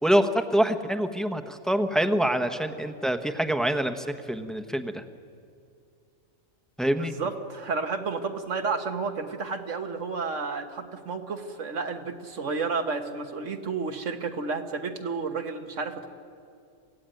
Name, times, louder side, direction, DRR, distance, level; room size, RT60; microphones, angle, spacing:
voice 1, 0.0-5.0 6.8-7.1, right 1 dB, ahead, 7 dB, 0.9 m, -25 dB
voice 2, 7.0-16.1, right 4 dB, 75° right, 6 dB, 1.8 m, -31 dB
27.5 x 16.0 x 9.2 m, 2.4 s
omnidirectional pair, 1.3 m